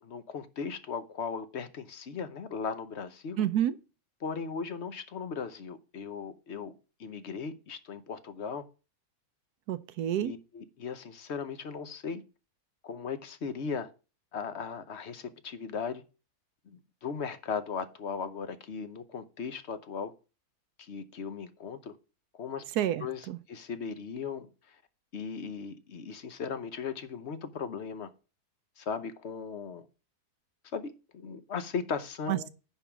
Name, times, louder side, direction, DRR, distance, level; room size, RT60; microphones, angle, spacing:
voice 1, 0.0-3.4 4.2-6.7 7.0-8.6 10.2-12.2 12.8-13.9 14.3-16.0 16.7-20.1 20.8-21.9 22.3-22.6 23.0-24.8 25.1-28.1 28.8-29.9 30.7-32.5, left 6 dB, 50° left, 1.0 m, -37 dB
voice 2, 3.4-3.7 9.7-10.3 22.8-23.4 32.3-32.5, right 11 dB, 85° right, 1.2 m, -29 dB
10.0 x 3.6 x 7.1 m
omnidirectional pair, 1.6 m